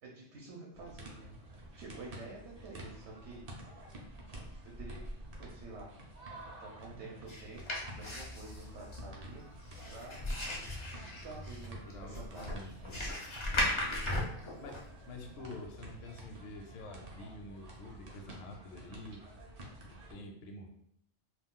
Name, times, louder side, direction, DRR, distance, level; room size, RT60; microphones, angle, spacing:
voice 1, 0.0-1.4 1.8-3.5 4.6-5.0 5.4-6.0 6.6-9.5 9.9-10.3 11.0-12.7 13.8-14.2, right 3 dB, 65° right, -2 dB, 0.8 m, -49 dB
sound 1, 0.7-20.1, right 1 dB, 50° right, 0.5 m, -50 dB
sound 2, 7.3-14.9, left 1 dB, 45° left, 0.4 m, -37 dB
voice 2, 11.9-13.1 14.6-19.2 19.9-20.7, left 2 dB, 65° left, 2 dB, 0.7 m, -48 dB
2.4 x 2.3 x 3.6 m, 0.71 s
omnidirectional pair, 1.3 m